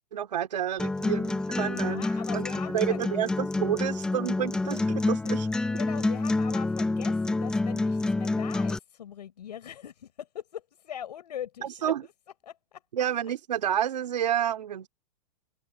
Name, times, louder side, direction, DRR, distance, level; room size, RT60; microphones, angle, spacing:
voice 1, 0.1-2.0 2.3-2.5 2.7-5.5 11.6-12.0 12.9-14.9, right 10 dB, 85° right, 2.8 m, -29 dB
Acoustic guitar, 0.8-8.8, left 2 dB, 5° left, 0.6 m, -28 dB
voice 2, 1.7-3.0 5.2-5.4 5.6-12.1 12.4-12.8, left 10 dB, 80° left, 6.7 m, -41 dB
open air
supercardioid pair, 165°, 21 cm